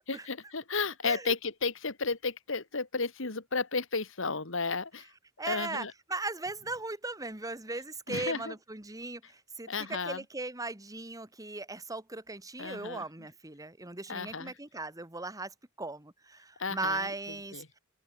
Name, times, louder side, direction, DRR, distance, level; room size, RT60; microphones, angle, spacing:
voice 1, 0.1-5.1 5.4-5.9 8.1-8.5 9.7-10.2 12.6-13.0 14.1-14.5 16.6-17.1 17.5-17.7, left 4 dB, 65° left, 2.0 m, -33 dB
voice 2, 1.0-1.3 5.4-17.8, right 2 dB, 15° right, 2.1 m, -38 dB
open air
head